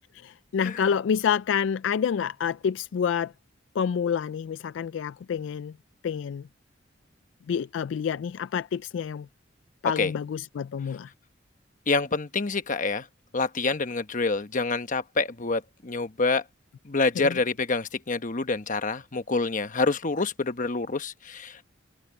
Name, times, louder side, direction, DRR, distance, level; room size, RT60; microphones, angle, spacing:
voice 1, 0.1-3.3 3.8-5.8 6.0-6.5 7.5-9.3 9.8-11.1 17.2-17.4, left 7 dB, 75° left, 0.3 m, -28 dB
voice 2, 11.9-13.1 13.3-16.4 16.8-21.6, left 3 dB, 45° left, 1.1 m, -27 dB
head